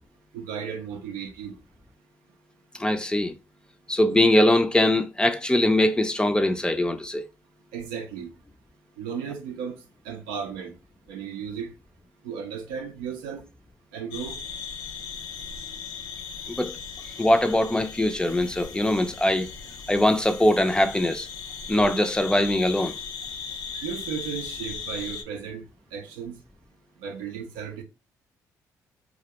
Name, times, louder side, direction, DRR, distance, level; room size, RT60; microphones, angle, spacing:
voice 1, 0.3-1.6 7.7-8.3 9.0-9.8 10.0-10.7 11.1-11.7 12.2-13.4 13.9-14.4 23.8-25.6 25.9-26.4 27.0-27.8, right 7 dB, 90° right, 0.4 m, -34 dB
voice 2, 2.7-3.4 3.9-7.2 16.5-16.8 17.2-19.5 19.9-21.3 21.7-23.0, left 1 dB, 10° left, 0.4 m, -22 dB
sound 1, 14.1-25.2, left 6 dB, 80° left, 0.4 m, -38 dB
2.4 x 2.0 x 2.8 m
supercardioid pair, 55°, 8 cm